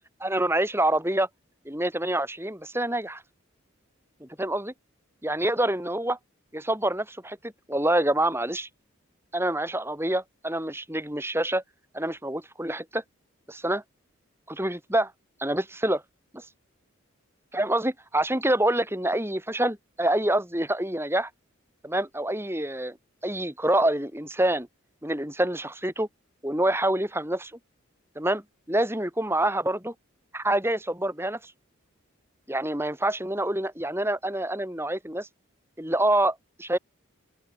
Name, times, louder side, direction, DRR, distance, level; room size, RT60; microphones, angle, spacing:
voice 1, 0.2-1.3 1.6-3.2 4.2-4.7 5.2-6.2 6.5-7.4 7.7-8.7 9.3-11.6 11.9-13.0 13.5-13.8 14.5-15.1 15.4-16.0 17.5-21.3 21.8-23.0 23.2-24.7 25.0-26.1 26.4-27.5 28.1-28.4 28.7-29.9 30.3-31.4 32.5-35.3 35.8-36.8, right 1 dB, 10° right, 6.7 m, -26 dB
open air
head